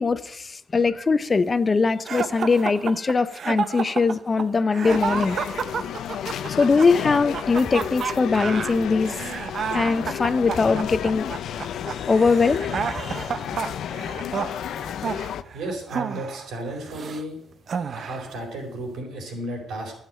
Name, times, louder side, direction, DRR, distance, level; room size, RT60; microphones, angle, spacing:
voice 1, 0.0-5.4 6.6-9.2 9.7-11.3 12.0-13.3 14.7-14.8, left 4 dB, 30° left, 0.6 m, -21 dB
sound 1, 2.1-17.2 17.7-18.4, right 6 dB, 50° right, 0.7 m, -31 dB
sound 2, 4.9-15.4, left 9 dB, 75° left, 0.6 m, -32 dB
voice 2, 15.5-17.4 17.9-19.9, right 1 dB, 75° right, 4.6 m, -33 dB
12.0 x 7.4 x 7.5 m
cardioid pair, 90°, 0 cm